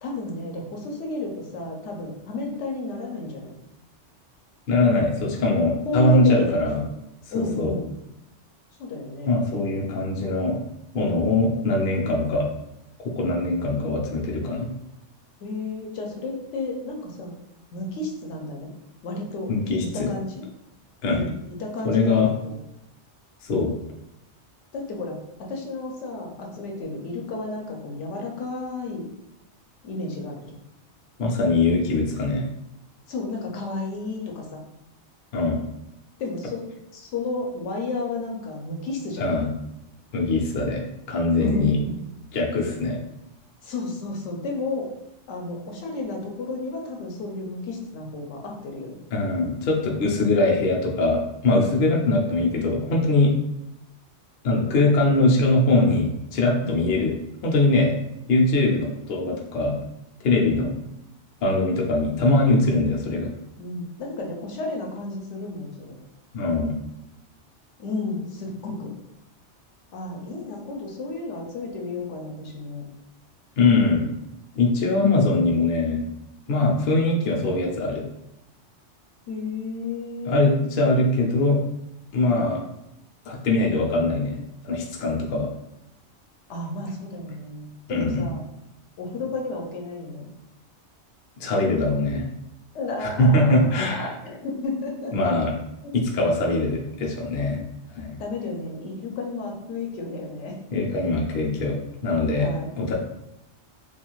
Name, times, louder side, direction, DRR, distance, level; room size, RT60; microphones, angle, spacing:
voice 1, 0.0-3.6 5.8-6.9 7.3-7.9 8.8-9.4 15.4-17.4 17.7-18.7 19.0-19.5 19.8-20.5 21.1-22.6 24.7-29.0 29.8-30.4 33.1-34.6 36.2-36.6 36.9-39.4 41.4-42.0 43.6-44.9 45.3-49.0 56.6-56.9 63.6-66.0 67.8-68.9 69.9-72.8 79.3-80.7 82.2-82.5 86.5-88.5 89.0-90.3 92.7-95.3 98.2-100.6 102.4-102.8, left 3 dB, 85° left, 0 dB, 0.9 m, -32 dB
voice 2, 4.7-6.8 7.3-7.7 9.3-10.6 10.9-12.5 13.2-14.7 19.5-20.1 21.0-21.2 21.8-22.3 23.4-23.7 31.2-32.4 35.3-35.6 39.2-39.5 40.1-41.8 42.3-43.0 49.1-53.3 54.4-57.1 57.4-57.9 58.3-59.8 60.2-60.7 61.4-63.3 66.3-66.8 73.6-74.0 74.5-76.1 76.5-78.0 80.3-81.6 82.1-82.6 83.3-84.4 84.6-85.5 87.9-88.3 91.4-92.3 93.0-94.1 95.1-95.5 95.9-97.6 98.0-98.2 100.7-102.9, left 2 dB, 60° left, -1 dB, 0.7 m, -22 dB
2.4 x 2.3 x 2.9 m, 0.85 s
omnidirectional pair, 1.2 m